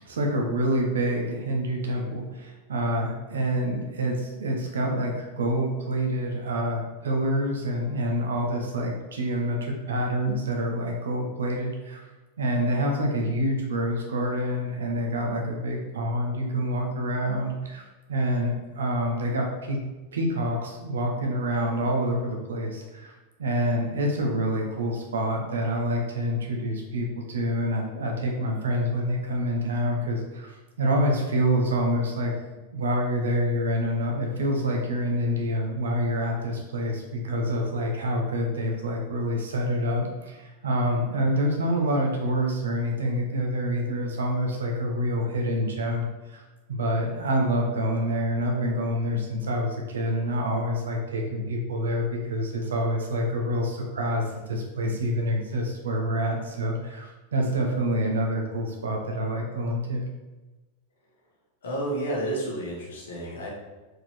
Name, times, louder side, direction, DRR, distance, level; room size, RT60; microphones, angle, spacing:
voice 1, 0.0-12.0 12.4-17.8 18.1-19.8 20.1-23.1 23.4-32.3 32.7-46.4 46.7-60.1, equal, 65° right, 1 dB, 1.2 m, -27 dB
voice 2, 61.6-63.5, right 1 dB, 65° left, -3 dB, 1.7 m, -30 dB
4.9 x 4.4 x 4.6 m, 1.2 s
figure-of-eight pair, 90°, 0 cm